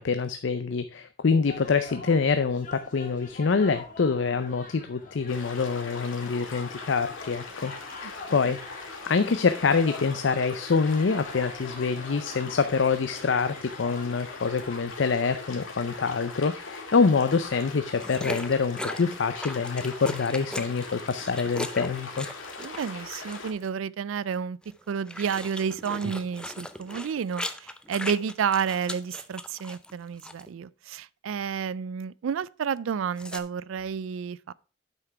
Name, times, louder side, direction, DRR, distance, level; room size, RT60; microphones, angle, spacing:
voice 1, 0.0-7.7 8.0-8.7 9.1-22.3, left 5 dB, 65° left, 0.5 m, -26 dB
sound 1, 1.4-14.9, left 3 dB, 40° left, 1.8 m, -45 dB
sound 2, 5.3-23.5, left 4 dB, 90° left, 2.1 m, -41 dB
sound 3, 18.0-23.6 24.6-29.9 30.2-30.5 33.2-33.4, left 1 dB, 5° left, 0.5 m, -38 dB
voice 2, 22.6-24.6 24.9-34.5, right 7 dB, 90° right, 0.4 m, -30 dB
8.1 x 5.9 x 4.5 m
head